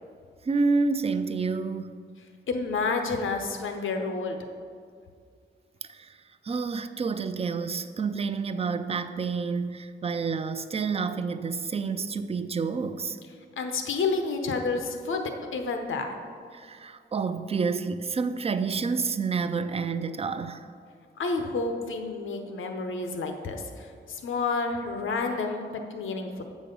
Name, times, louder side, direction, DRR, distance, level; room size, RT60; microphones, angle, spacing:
voice 1, 0.5-2.0 5.8-6.2 6.4-13.2 16.5-20.7, right 4 dB, 30° right, 0.4 m, -29 dB
voice 2, 2.5-4.4 13.6-16.1 21.2-26.4, left 4 dB, 90° left, 0.8 m, -30 dB
7.6 x 6.2 x 5.3 m
wide cardioid pair, 130°, 20 cm